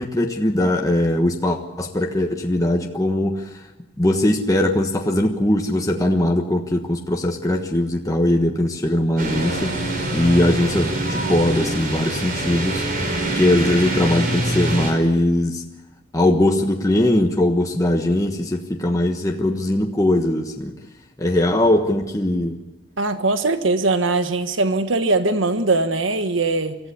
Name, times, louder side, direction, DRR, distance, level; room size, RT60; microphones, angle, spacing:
voice 1, 0.0-3.5 4.0-12.8 13.2-15.6 16.1-20.7 21.2-22.6, left 1 dB, 20° left, 2 dB, 1.3 m, -20 dB
sound 1, 9.2-14.9, right 1 dB, 50° right, 4.8 m, -24 dB
voice 2, 23.0-26.8, right 3 dB, 90° right, 9 dB, 1.4 m, -21 dB
25.0 x 14.5 x 8.4 m, 1.1 s
head